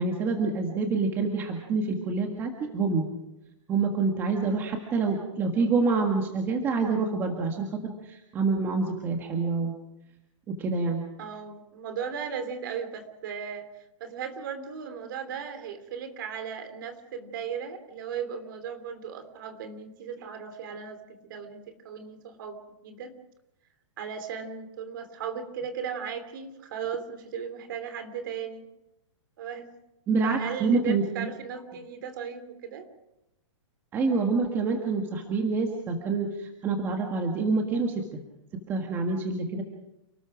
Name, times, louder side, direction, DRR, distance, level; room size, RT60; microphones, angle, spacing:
voice 1, 0.0-3.1 3.7-9.8 10.5-11.0 30.1-31.3 33.9-38.2 38.5-39.6, right 4 dB, 15° right, 2 dB, 1.7 m, -27 dB
voice 2, 11.2-22.6 22.8-23.1 24.0-28.7 29.4-29.7 30.2-32.9, right 7 dB, 40° right, 8 dB, 3.3 m, -36 dB
29.5 x 19.5 x 5.1 m, 0.88 s
hypercardioid pair, 175°, 16 cm